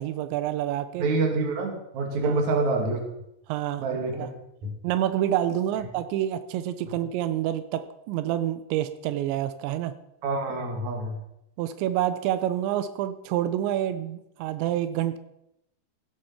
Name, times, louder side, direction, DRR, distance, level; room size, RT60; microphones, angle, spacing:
voice 1, 0.0-1.0 2.2-2.4 3.5-3.8 4.1-4.3 4.8-9.9 11.6-15.2, right 12 dB, 85° right, 11 dB, 3.0 m, -28 dB
voice 2, 1.0-3.0 3.8-4.3 4.6-4.8 5.8-5.9 10.2-11.2, right 3 dB, 45° right, 2 dB, 3.4 m, -27 dB
17.0 x 9.8 x 5.8 m, 0.83 s
omnidirectional pair, 5.1 m